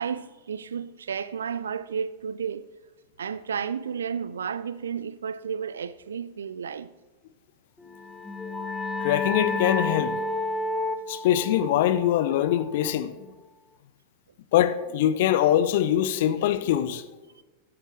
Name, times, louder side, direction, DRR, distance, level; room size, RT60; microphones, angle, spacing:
voice 1, 0.0-2.7 3.2-6.9 17.4-17.5, right 7 dB, 70° right, 0.4 m, -32 dB
sound 1, 7.9-13.3, left 2 dB, 10° left, 0.7 m, -31 dB
voice 2, 9.0-10.1 11.1-13.1 14.5-17.0, left 11 dB, 55° left, 0.6 m, -23 dB
12.5 x 9.9 x 3.5 m
figure-of-eight pair, 90°, 0 cm